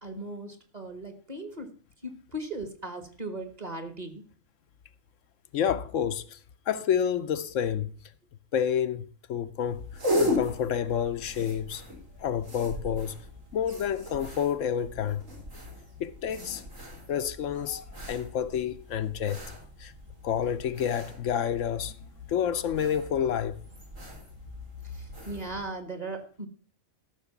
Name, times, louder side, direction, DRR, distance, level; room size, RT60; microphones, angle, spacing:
voice 1, 0.0-1.7 2.0-4.2 24.8-26.5, right 2 dB, 30° right, 1.6 m, -38 dB
voice 2, 5.5-6.4 6.7-7.9 8.5-9.8 10.2-11.8 12.2-13.2 13.5-15.2 16.0-16.6 17.1-19.5 19.8-19.9 20.2-22.0 22.3-23.6, left 8 dB, 80° left, 1.0 m, -29 dB
sound 1, 9.6-25.7, left 1 dB, 80° right, 4.6 m, -37 dB
13.5 x 6.2 x 5.8 m
omnidirectional pair, 1.3 m